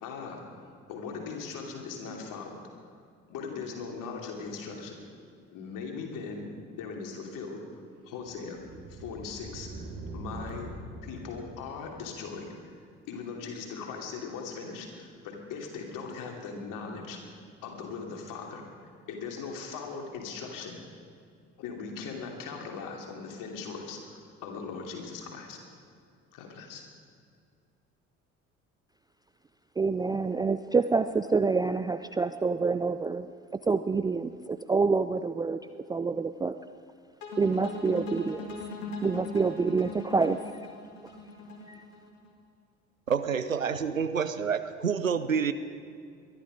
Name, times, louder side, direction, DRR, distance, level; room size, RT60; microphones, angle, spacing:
voice 1, 0.0-2.9 3.3-5.0 5.5-6.5 6.7-7.8 8.0-8.6 8.9-10.7 11.0-12.8 13.1-20.8 21.6-25.6 26.3-26.8, left 5 dB, 55° left, 1 dB, 3.0 m, -39 dB
sound 1, 6.8-12.4, right 1 dB, 50° right, 3.7 m, -44 dB
voice 2, 29.8-33.3 33.5-35.6 35.9-36.5 37.4-38.5 39.0-40.4, right 4 dB, 10° right, 10 dB, 0.4 m, -27 dB
sound 2, 37.2-42.3, left 2 dB, 75° left, 2.2 m, -39 dB
voice 3, 43.1-45.5, right 6 dB, 90° right, 12 dB, 0.6 m, -28 dB
22.0 x 12.0 x 5.2 m, 2.3 s
figure-of-eight pair, 55°, 39 cm